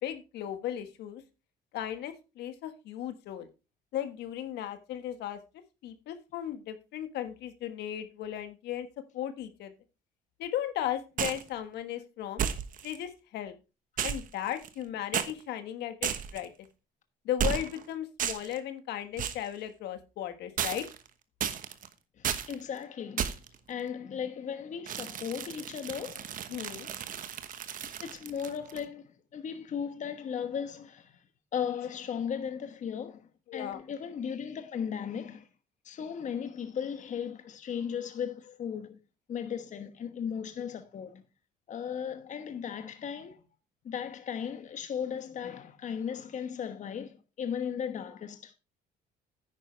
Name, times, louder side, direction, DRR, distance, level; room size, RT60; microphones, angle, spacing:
voice 1, 0.0-1.2 1.7-3.5 3.9-5.4 5.8-8.9 9.1-9.7 10.4-12.4 12.8-13.5 14.0-16.5 17.2-20.9 26.5-26.9 33.5-33.8, left 11 dB, 80° left, 1.5 m, -36 dB
sound 1, 11.2-11.5 12.4-13.0 14.0-14.8 15.1-15.3 16.0-16.5 17.4-17.8 18.2-18.6 19.2-19.5 20.6-21.1 21.4-21.9 22.2-22.5 23.2-23.5 24.9-28.8, right 8 dB, 55° right, 1.2 m, -33 dB
voice 2, 22.2-23.3 23.7-26.3 27.8-31.2 31.5-35.5 35.8-39.0 39.3-41.2 41.7-43.4 43.8-48.5, left 7 dB, 45° left, 1.2 m, -36 dB
10.0 x 9.2 x 3.2 m
cardioid pair, 110°, 17 cm